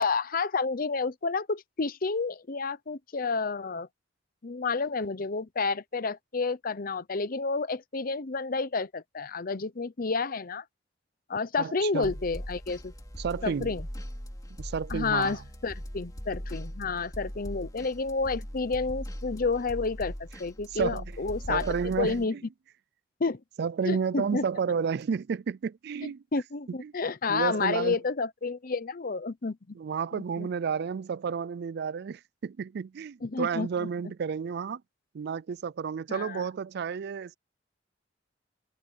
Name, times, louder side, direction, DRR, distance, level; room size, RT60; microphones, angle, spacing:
voice 1, 0.0-3.9 4.4-10.6 11.3-12.9 13.4-13.9 14.9-15.4 15.6-21.6 22.0-22.3 23.2-23.4 23.9-24.5 26.3-29.8 30.1-30.5 33.2-33.7 36.1-36.4, left 4 dB, 50° left, 0.8 m, -30 dB
voice 2, 11.6-12.1 13.2-13.8 14.6-15.4 20.7-21.1 21.5-22.4 23.6-26.2 26.7-26.9 27.3-28.0 29.7-34.8 35.1-37.4, right 6 dB, 60° right, 0.4 m, -31 dB
sound 1, 12.0-22.2, equal, 20° left, 3.0 m, -40 dB
head